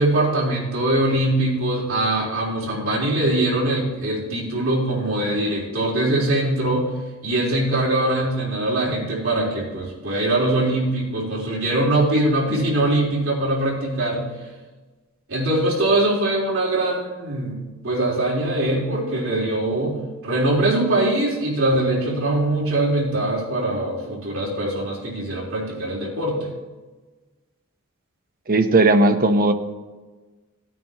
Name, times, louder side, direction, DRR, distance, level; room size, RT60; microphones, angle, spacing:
voice 1, 0.0-7.0 7.2-14.3 15.3-26.5, right 1 dB, 65° right, -5 dB, 4.0 m, -22 dB
voice 2, 28.5-29.5, right 2 dB, 45° right, 7 dB, 0.8 m, -16 dB
16.0 x 9.2 x 3.0 m, 1.3 s
head